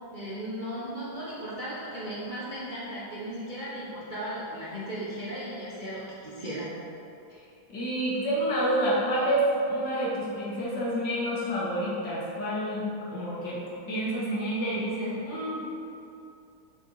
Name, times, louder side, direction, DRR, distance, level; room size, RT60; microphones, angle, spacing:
voice 1, 0.1-6.7, equal, 30° right, -8 dB, 1.1 m, -36 dB
voice 2, 7.7-12.8 13.1-15.7, right 1 dB, 60° left, -6 dB, 2.4 m, -28 dB
7.2 x 6.8 x 4.4 m, 2.7 s
omnidirectional pair, 2.3 m